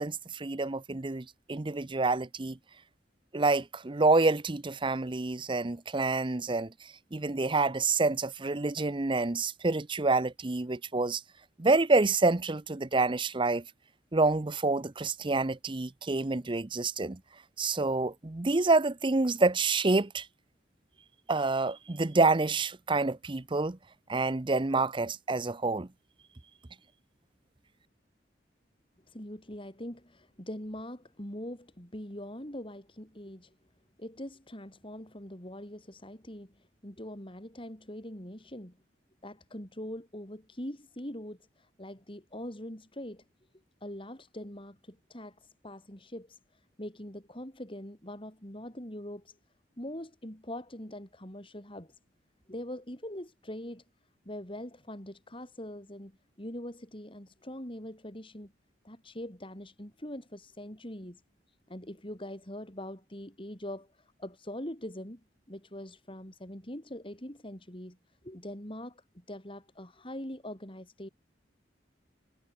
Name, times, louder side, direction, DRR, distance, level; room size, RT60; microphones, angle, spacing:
voice 1, 0.0-2.6 3.3-11.2 11.6-13.6 14.1-17.2 17.6-20.3 21.3-23.8 24.1-25.9, right 3 dB, 30° right, 0.7 m, -28 dB
voice 2, 29.1-33.6 34.0-38.7 39.2-43.2 43.8-49.4 49.8-52.0 52.5-53.8 54.3-58.5 58.8-61.2 61.7-65.2 65.5-68.0 68.2-71.1, left 1 dB, 30° left, 5.7 m, -43 dB
head